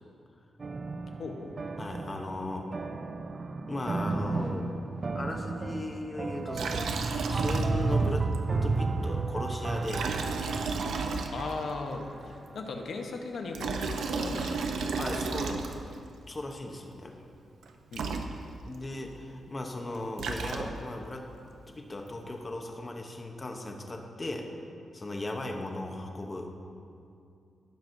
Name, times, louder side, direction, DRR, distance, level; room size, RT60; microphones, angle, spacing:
sound 1, 0.6-12.1, right 3 dB, 35° right, 0.4 m, -33 dB
voice 1, 1.2-1.7 11.3-14.8 17.9-18.2, left 3 dB, 65° left, 3 dB, 0.9 m, -38 dB
voice 2, 1.8-2.7 3.7-8.3 8.6-10.1 15.0-15.6 16.3-17.1 18.7-21.3 21.7-24.5 24.9-26.5, left 2 dB, 25° left, 3 dB, 0.9 m, -37 dB
Liquid, 6.5-8.1 8.3-8.4 9.8-11.7 13.3-16.0 17.6-17.7 17.9-18.8 19.9-21.0, right 4 dB, 85° right, 0.6 m, -33 dB
17.5 x 6.1 x 2.7 m, 2.5 s
wide cardioid pair, 135°, 0 cm